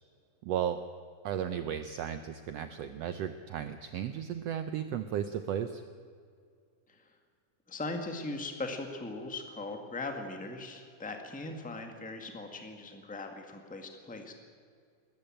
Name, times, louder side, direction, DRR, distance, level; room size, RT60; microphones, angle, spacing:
voice 1, 0.4-0.8 1.2-5.8, right 9 dB, 80° right, 10 dB, 1.4 m, -34 dB
voice 2, 7.7-14.3, left 2 dB, 5° left, 5 dB, 0.6 m, -39 dB
21.0 x 14.0 x 8.9 m, 2.1 s
omnidirectional pair, 3.7 m